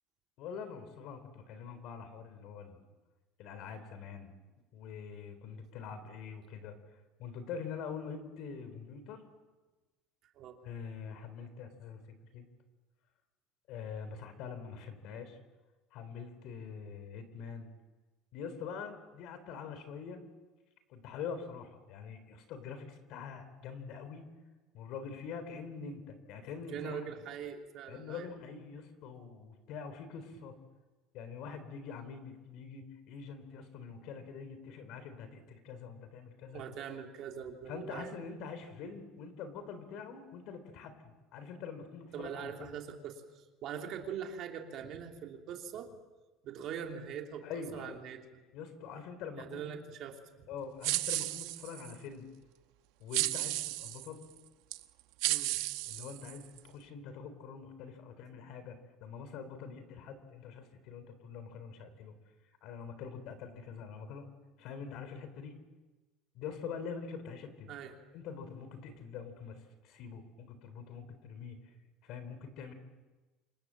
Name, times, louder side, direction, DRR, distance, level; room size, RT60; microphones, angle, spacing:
voice 1, 0.4-2.8 3.4-4.3 4.7-9.2 10.6-12.5 13.7-15.4 15.9-17.7 18.3-20.2 20.9-24.3 24.7-27.0 27.9-30.6 31.1-36.6 37.7-40.9 41.3-42.7 47.4-48.0 48.5-49.6 50.5-52.3 53.0-54.2 55.9-62.1 62.6-64.3 64.6-65.5 66.3-67.7 68.1-71.6 72.0-72.7, left 6 dB, 50° left, 11 dB, 3.8 m, -44 dB
voice 2, 26.7-28.3 36.5-38.1 42.1-45.9 46.4-48.2 49.3-50.4 55.2-55.6 67.7-68.0, right 7 dB, 40° right, 2 dB, 3.1 m, -42 dB
sound 1, 50.8-51.9 53.1-54.1 54.7-54.8 55.2-56.6, right 18 dB, 70° right, 1.2 m, -33 dB
28.5 x 27.0 x 7.6 m, 1.2 s
cardioid pair, 180°, 0 cm